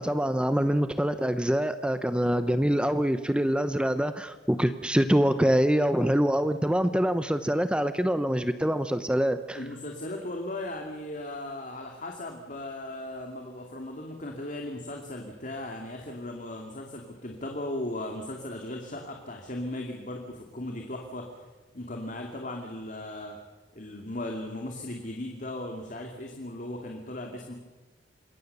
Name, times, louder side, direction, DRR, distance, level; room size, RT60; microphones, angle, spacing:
voice 1, 0.0-9.6, equal, 5° right, 11 dB, 0.9 m, -25 dB
voice 2, 9.5-21.4 21.7-23.4 23.7-27.5, left 1 dB, 45° left, 2 dB, 2.6 m, -37 dB
27.0 x 22.0 x 6.9 m, 1.2 s
head